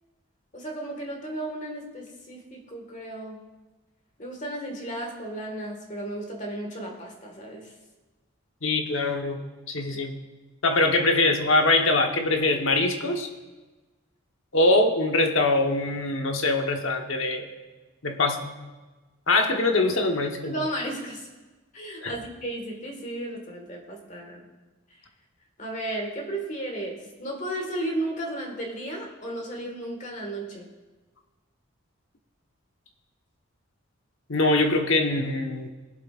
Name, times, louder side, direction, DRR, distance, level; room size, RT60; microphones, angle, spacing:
voice 1, 0.5-3.4 4.2-7.7 20.4-21.3 21.7-24.5 25.6-30.7, right 1 dB, 35° left, 2 dB, 1.7 m, -34 dB
voice 2, 8.6-9.4 9.7-10.2 10.6-13.3 14.5-17.5 18.0-18.5 19.3-20.6 22.0-22.1 34.3-35.7, left 2 dB, 70° left, 4 dB, 1.1 m, -23 dB
21.0 x 7.5 x 2.5 m, 1.2 s
head